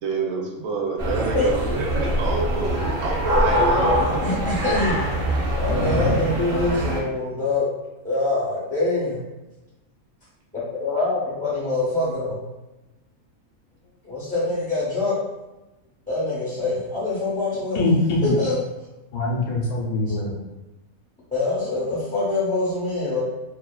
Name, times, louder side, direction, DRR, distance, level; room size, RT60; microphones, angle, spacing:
voice 1, 0.0-4.0, right 3 dB, 75° right, -1 dB, 1.0 m, -27 dB
sound 1, 1.0-7.0, equal, 60° right, 0.7 m, -23 dB
voice 2, 4.2-5.0 5.6-7.7 8.0-9.2 10.5-12.4 14.0-15.1 16.1-17.8 18.2-18.5 21.3-23.2, left 2 dB, 10° left, -8 dB, 0.5 m, -24 dB
voice 3, 17.7-18.4 19.1-20.3 22.3-22.6 22.9-23.2, left 2 dB, 80° left, -2 dB, 1.1 m, -24 dB
2.7 x 2.4 x 2.2 m, 1.0 s
omnidirectional pair, 1.5 m